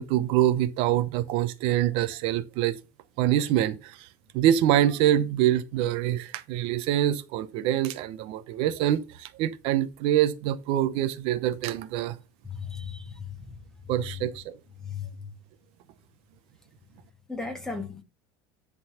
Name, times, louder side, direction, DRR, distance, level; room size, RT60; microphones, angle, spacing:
voice 1, 0.0-2.7 3.2-4.1 4.3-12.2 13.9-14.6, right 12 dB, 55° right, 0.8 m, -25 dB
voice 2, 12.4-13.6 14.8-15.3 17.3-18.0, left 5 dB, 5° left, 1.5 m, -36 dB
10.5 x 3.9 x 5.7 m
cardioid pair, 160°, 11 cm